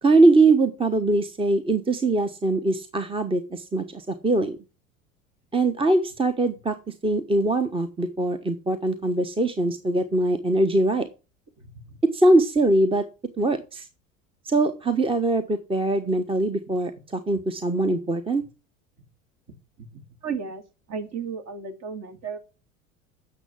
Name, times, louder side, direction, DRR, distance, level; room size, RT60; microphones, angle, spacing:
voice 1, 0.0-4.6 5.5-11.1 12.1-13.0 13.4-13.9 14.4-18.4, right 2 dB, 15° right, 10 dB, 1.2 m, -22 dB
voice 2, 11.6-12.0 19.8-20.6 20.9-22.4, right 6 dB, 40° right, 7 dB, 2.9 m, -34 dB
8.9 x 6.8 x 7.6 m, 0.31 s
hypercardioid pair, 75°, 39 cm